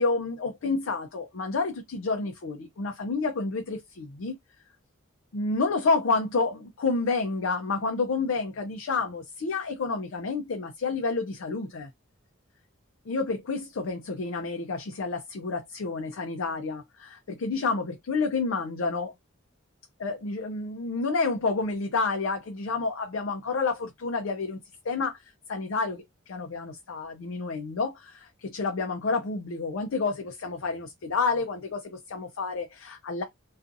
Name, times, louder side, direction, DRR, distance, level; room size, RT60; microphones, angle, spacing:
voice 1, 0.0-4.4 5.3-11.9 13.1-19.1 20.0-33.2, left 4 dB, 65° left, 0.5 m, -29 dB
2.5 x 2.4 x 2.5 m
head